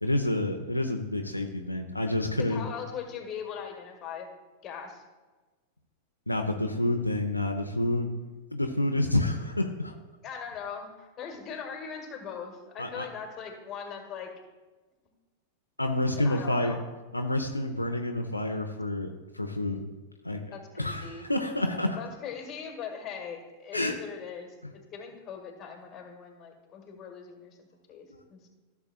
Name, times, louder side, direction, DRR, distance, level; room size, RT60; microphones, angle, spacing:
voice 1, 0.0-2.6 6.3-8.1 8.5-9.9 12.8-13.1 15.8-16.8 17.1-19.8 20.2-20.4 20.8-22.0 23.7-24.0 28.1-28.2, left 1 dB, 85° left, 3 dB, 0.7 m, -28 dB
voice 2, 2.4-4.3 4.6-5.0 8.2-8.3 10.2-14.3 16.2-16.8 20.5-21.3 22.0-28.5, left 7 dB, 30° left, 2 dB, 1.9 m, -40 dB
15.0 x 6.9 x 2.4 m, 1.3 s
figure-of-eight pair, 90°, 0 cm